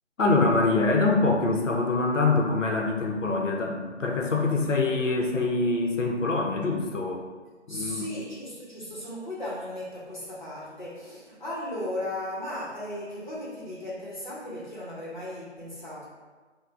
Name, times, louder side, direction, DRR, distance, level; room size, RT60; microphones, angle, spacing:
voice 1, 0.2-7.2 7.7-8.1, left 3 dB, 80° left, 0 dB, 0.6 m, -24 dB
voice 2, 7.7-16.1, left 1 dB, 40° left, -7 dB, 0.8 m, -36 dB
2.4 x 2.1 x 3.2 m, 1.4 s
figure-of-eight pair, 175°, 37 cm